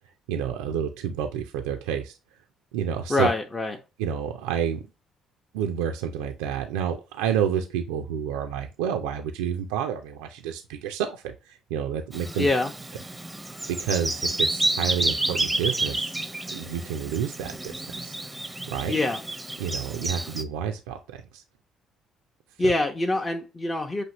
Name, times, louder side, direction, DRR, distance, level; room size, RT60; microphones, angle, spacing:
voice 1, 0.3-2.2 2.7-3.3 4.0-4.8 5.5-12.5 13.8-16.1 16.5-18.1 18.7-19.0 19.6-21.4 22.6-22.7, right 8 dB, 80° right, 0.3 m, -29 dB
voice 2, 3.1-3.8 12.4-12.7 18.9-19.2 22.6-24.0, left 2 dB, 25° left, 0.7 m, -24 dB
Bird vocalization bird call bird song, 12.1-20.4, right 2 dB, 15° right, 0.6 m, -30 dB
6.0 x 2.6 x 2.9 m
hypercardioid pair, 50°, 0 cm